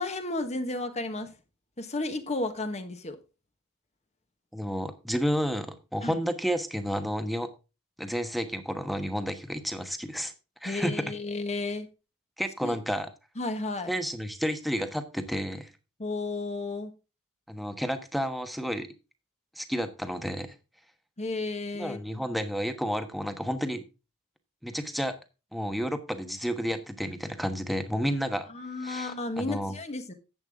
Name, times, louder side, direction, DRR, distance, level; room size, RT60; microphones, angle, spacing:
voice 1, 0.0-1.3 1.8-3.2 6.0-6.2 10.6-11.9 12.6-12.8 13.4-13.9 16.0-16.9 21.2-22.2 28.5-30.1, left 2 dB, 30° left, 1.4 m, -33 dB
voice 2, 4.5-7.5 8.0-10.3 10.6-11.0 12.4-13.1 13.9-15.7 17.5-18.9 19.6-20.5 21.7-23.8 24.6-25.1 25.5-28.5 28.8-29.7, equal, ahead, 1.2 m, -31 dB
10.5 x 8.3 x 3.6 m
head